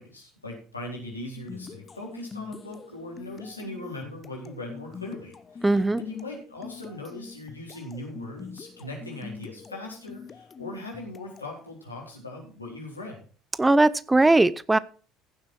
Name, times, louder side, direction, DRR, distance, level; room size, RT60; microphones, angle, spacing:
voice 1, 0.0-13.2, left 2 dB, 85° left, -2 dB, 4.0 m, -39 dB
sound 1, 1.4-11.6, left 5 dB, 30° left, 0.9 m, -45 dB
voice 2, 5.6-6.0 13.6-14.8, right 2 dB, 10° right, 19 dB, 0.6 m, -19 dB
16.0 x 7.4 x 4.5 m, 0.39 s
figure-of-eight pair, 60°, 0 cm